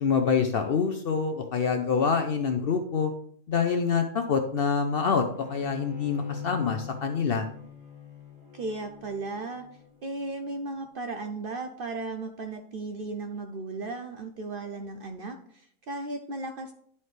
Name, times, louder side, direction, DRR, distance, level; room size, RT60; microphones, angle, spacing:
voice 1, 0.0-3.1 3.5-7.5, left 5 dB, 60° left, 6 dB, 0.6 m, -26 dB
Bowed string instrument, 5.3-10.7, left 7 dB, 40° right, 2.9 m, -42 dB
voice 2, 8.5-9.7 10.0-16.7, right 3 dB, 60° right, 5 dB, 0.6 m, -35 dB
11.0 x 4.2 x 3.2 m, 0.64 s
omnidirectional pair, 1.4 m